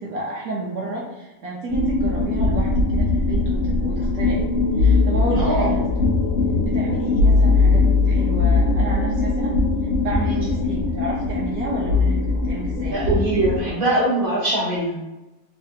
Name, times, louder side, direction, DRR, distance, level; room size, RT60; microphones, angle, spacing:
voice 1, 0.0-4.5 4.8-6.0 6.6-9.6 10.0-12.2 12.4-13.0, right 2 dB, 65° right, -4 dB, 1.1 m, -30 dB
sound 1, 1.7-13.7, left 3 dB, 60° left, 0.8 m, -20 dB
voice 2, 5.4-5.7 10.3-10.5 12.9-15.0, right 1 dB, 35° right, -6 dB, 1.1 m, -22 dB
3.4 x 3.3 x 2.7 m, 1.0 s
omnidirectional pair, 1.8 m